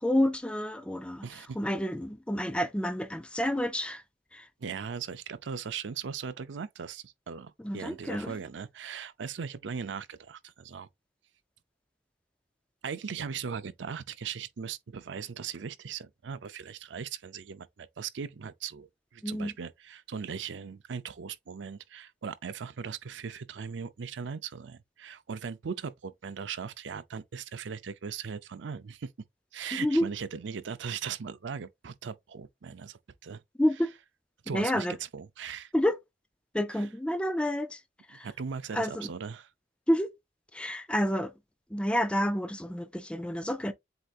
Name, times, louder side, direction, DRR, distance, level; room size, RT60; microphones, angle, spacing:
voice 1, 0.0-4.0 4.3-4.5 7.6-8.4 19.2-19.5 29.7-30.1 33.6-33.9 34.5-34.9 35.7-36.0 36.5-37.8 38.1-38.3 38.7-39.1 39.9-40.1 40.5-41.3 41.7-43.7, equal, 5° left, 0.4 m, -29 dB
voice 2, 1.2-1.6 4.6-10.9 12.8-29.1 29.5-33.4 34.4-34.9 35.1-35.7 36.7-36.8 38.2-39.5, right 6 dB, 75° right, 0.5 m, -39 dB
7.8 x 2.6 x 2.4 m
head